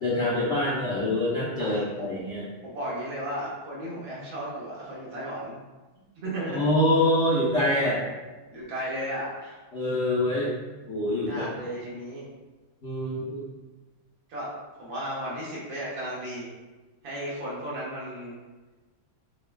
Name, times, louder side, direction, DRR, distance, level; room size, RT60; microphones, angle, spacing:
voice 1, 0.0-2.4 6.5-8.0 9.7-10.5 10.9-11.4 12.8-13.4, left 1 dB, 55° left, -9 dB, 0.8 m, -25 dB
voice 2, 1.6-2.2 2.6-5.6 6.2-6.7 8.5-9.6 11.3-12.2 14.3-14.5 14.8-16.5 17.0-18.4, equal, 70° right, -6 dB, 1.9 m, -34 dB
6.6 x 2.3 x 2.3 m, 1.2 s
omnidirectional pair, 2.3 m